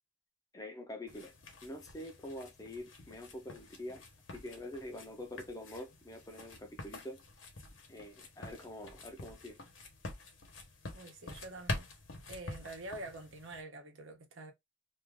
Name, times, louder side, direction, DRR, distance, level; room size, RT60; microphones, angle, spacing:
voice 1, 0.5-1.3 1.6-4.0 4.3-7.2 7.9-9.6, left 1 dB, 20° left, 0.5 m, -45 dB
sound 1, 1.1-13.6, left 2 dB, 80° left, 1.0 m, -47 dB
voice 2, 10.9-11.9 12.3-14.5, right 2 dB, 90° right, 0.9 m, -46 dB
2.7 x 2.4 x 3.5 m
head